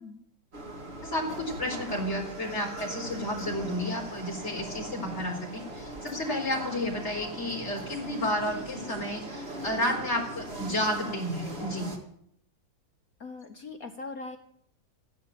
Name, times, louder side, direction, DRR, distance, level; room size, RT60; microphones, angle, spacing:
sound 1, 0.5-12.0, right 1 dB, 30° right, 2.7 m, -40 dB
voice 1, 1.0-11.9, left 1 dB, 35° left, 1 dB, 4.5 m, -31 dB
voice 2, 13.2-14.4, left 3 dB, 55° left, 6 dB, 1.4 m, -40 dB
14.5 x 10.5 x 9.2 m, 0.67 s
omnidirectional pair, 2.1 m